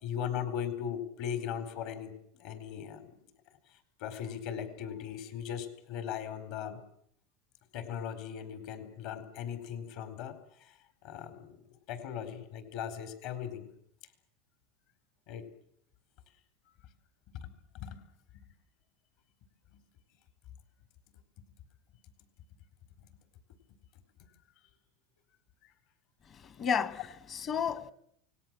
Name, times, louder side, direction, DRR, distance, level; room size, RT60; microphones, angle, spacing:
voice 1, 0.0-3.1 4.0-6.8 7.7-11.6 11.9-13.7 15.3-15.5 17.3-18.0 18.3-18.4 19.7-19.8 23.0-23.2 25.6-25.7, left 8 dB, 55° left, 4.4 m, -39 dB
voice 2, 26.3-27.9, left 7 dB, 30° left, 1.4 m, -33 dB
28.5 x 19.0 x 7.6 m
supercardioid pair, 155°, 0 cm